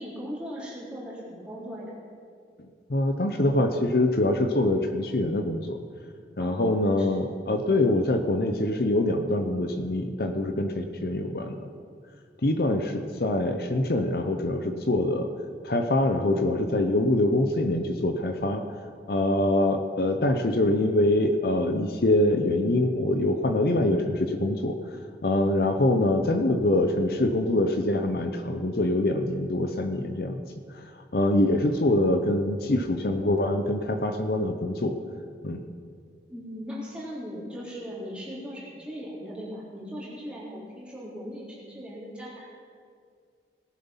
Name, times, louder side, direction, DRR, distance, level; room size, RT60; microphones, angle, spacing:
voice 1, 0.0-1.9 6.4-7.1 36.3-42.5, equal, 5° right, -7 dB, 3.3 m, -39 dB
voice 2, 2.9-5.8 6.4-11.6 12.4-15.3 15.6-18.6 19.1-24.7 25.2-30.4 31.1-34.9 35.4-35.6, left 1 dB, 55° left, 6 dB, 0.7 m, -24 dB
18.5 x 7.4 x 5.7 m, 2.2 s
head